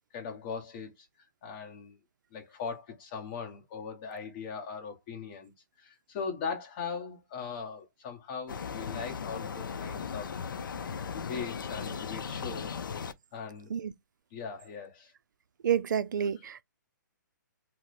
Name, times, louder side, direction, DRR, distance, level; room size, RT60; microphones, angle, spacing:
voice 1, 0.1-1.1 1.4-2.0 2.3-5.5 5.8-10.3 10.9-12.8 13.3-13.7 14.3-15.1 16.2-16.3, left 5 dB, 30° left, 1.0 m, -40 dB
sound 1, 8.5-13.1, left 6 dB, 85° left, 0.5 m, -37 dB
voice 2, 15.6-16.6, right 8 dB, 70° right, 0.4 m, -29 dB
2.9 x 2.1 x 4.0 m
hypercardioid pair, 155°, 11 cm